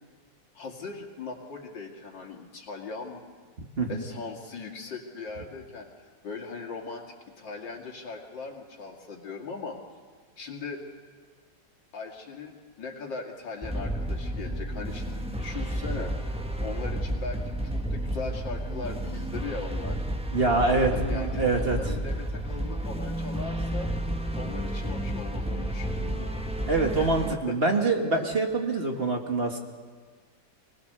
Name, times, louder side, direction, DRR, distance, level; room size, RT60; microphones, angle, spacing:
voice 1, 0.5-3.2 3.9-5.9 6.2-7.1 7.4-9.8 10.4-10.8 11.9-16.1 16.6-20.0 20.6-23.9 24.3-26.3 27.0-27.6, left 4 dB, 85° left, 1 dB, 3.2 m, -39 dB
voice 2, 3.6-4.0 20.3-21.8 26.7-29.6, right 3 dB, 35° right, 2 dB, 1.9 m, -25 dB
sound 1, 13.6-27.4, right 1 dB, 5° right, 0.8 m, -31 dB
25.0 x 19.0 x 6.8 m, 1.5 s
omnidirectional pair, 1.9 m